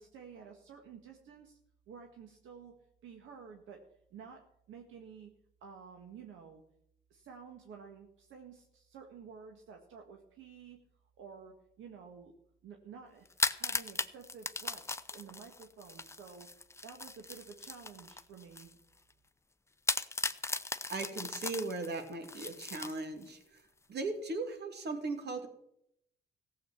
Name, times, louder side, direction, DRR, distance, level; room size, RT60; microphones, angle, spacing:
voice 1, 0.0-1.6 1.9-2.8 3.0-3.8 4.1-5.3 5.6-6.6 7.1-10.8 11.2-12.3 12.6-13.3 13.5-16.5 16.8-18.7, right 6 dB, 80° right, 3 dB, 1.7 m, -51 dB
sound 1, 13.3-18.7 19.1-19.2 19.9-23.4, left 3 dB, 15° left, 0.7 m, -37 dB
voice 2, 20.9-23.6 23.9-25.5, right 3 dB, 55° right, 6 dB, 2.7 m, -38 dB
15.5 x 7.7 x 7.3 m, 0.74 s
cardioid pair, 90°, 20 cm